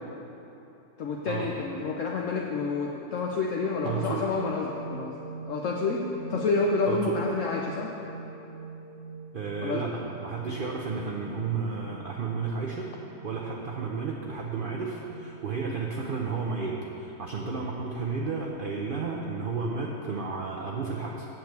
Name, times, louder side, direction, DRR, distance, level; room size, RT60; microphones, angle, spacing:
voice 1, 1.0-5.1 5.5-7.9 9.6-9.9, left 4 dB, 65° left, -1 dB, 1.0 m, -29 dB
sound 1, 3.6-16.4, right 4 dB, 30° right, 1.7 m, -43 dB
voice 2, 3.8-4.2 6.9-7.2 9.3-12.9 13.2-21.3, right 4 dB, 50° right, -1 dB, 0.7 m, -32 dB
7.6 x 6.6 x 8.0 m, 2.9 s
omnidirectional pair, 1.5 m